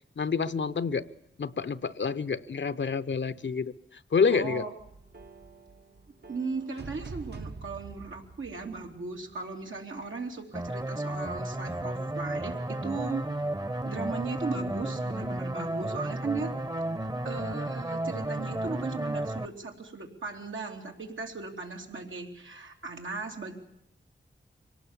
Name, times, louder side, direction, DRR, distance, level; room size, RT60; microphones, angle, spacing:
voice 1, 0.2-1.1 1.4-3.7 4.1-4.7, left 5 dB, 70° left, 13 dB, 0.8 m, -28 dB
voice 2, 4.3-4.7 6.3-13.3 13.8-16.5 17.0-23.6, right 4 dB, 85° right, 2 dB, 3.1 m, -37 dB
sound 1, 4.8-9.3, right 3 dB, 55° right, 1.1 m, -46 dB
sound 2, 10.5-19.5, right 1 dB, 20° right, 0.9 m, -33 dB
25.0 x 18.0 x 7.3 m, 0.74 s
wide cardioid pair, 85°, 20 cm